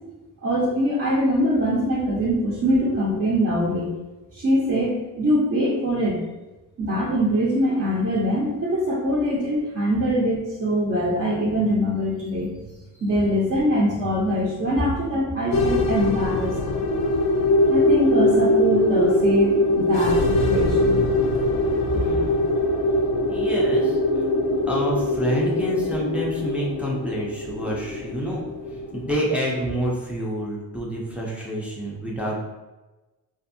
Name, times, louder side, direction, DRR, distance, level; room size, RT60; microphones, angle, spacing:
voice 1, 0.4-3.9 4.3-6.2 6.8-12.5 13.0-16.6 17.7-21.0, equal, 40° right, -6 dB, 0.7 m, -23 dB
sound 1, 15.5-29.1, left 1 dB, 65° left, 0.5 m, -22 dB
voice 2, 21.8-22.4 23.2-24.3 24.7-28.4 28.9-32.4, equal, 5° right, -4 dB, 0.5 m, -28 dB
2.5 x 2.5 x 2.6 m, 1.1 s
cardioid pair, 105°, 36 cm